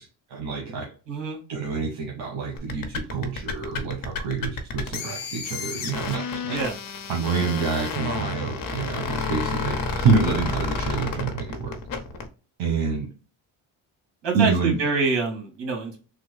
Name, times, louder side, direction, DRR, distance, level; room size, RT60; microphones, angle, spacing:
voice 1, 0.0-0.9 1.5-6.6 7.1-11.8 12.6-13.1 14.3-14.8, right 5 dB, 80° right, 0 dB, 1.1 m, -27 dB
voice 2, 1.1-1.4 6.5-6.7 14.2-16.0, right 4 dB, 60° right, 1 dB, 1.9 m, -26 dB
sound 1, 2.6-12.3, left 4 dB, 45° left, 0.8 m, -30 dB
3.4 x 2.2 x 3.2 m, 0.35 s
cardioid pair, 105°, 48 cm